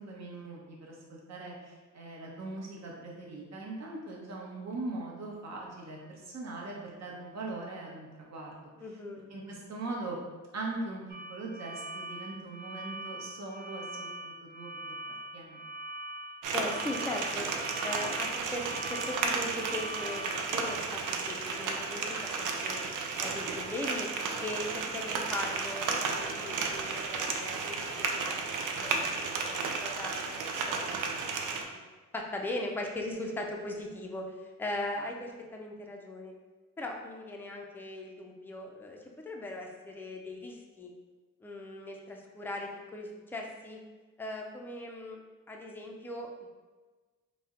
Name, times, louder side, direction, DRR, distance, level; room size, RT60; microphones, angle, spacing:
voice 1, 0.0-8.7 9.3-10.2 10.5-11.0 11.3-14.7 15.3-15.6, right 2 dB, 60° right, -2 dB, 0.9 m, -40 dB
voice 2, 8.8-9.3 16.5-17.5 17.8-18.7 18.9-22.8 23.2-24.1 24.4-30.9 31.6-31.8 32.1-34.3 34.6-36.3 36.8-39.0 39.3-40.9 41.4-43.8 44.2-46.5, left 1 dB, 5° left, 0 dB, 0.4 m, -39 dB
sound 1, 11.1-20.8, right 1 dB, 30° right, 0.9 m, -43 dB
sound 2, 16.4-31.6, right 4 dB, 85° right, 0.5 m, -33 dB
4.1 x 2.1 x 3.7 m, 1.3 s
wide cardioid pair, 130°, 31 cm